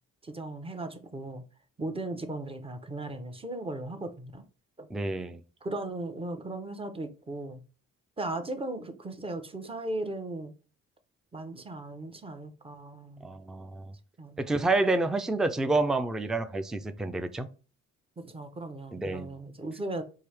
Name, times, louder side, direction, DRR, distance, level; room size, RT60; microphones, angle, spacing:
voice 1, 0.2-1.4 1.8-4.4 4.8-4.9 5.6-7.6 8.2-10.5 11.3-13.4 14.2-14.5 18.2-20.0, right 2 dB, 20° right, 0.7 m, -37 dB
voice 2, 4.9-5.4 13.2-13.9 14.4-17.5 18.9-19.3, right 2 dB, ahead, 0.3 m, -28 dB
4.7 x 2.7 x 3.3 m
cardioid pair, 90°, 30 cm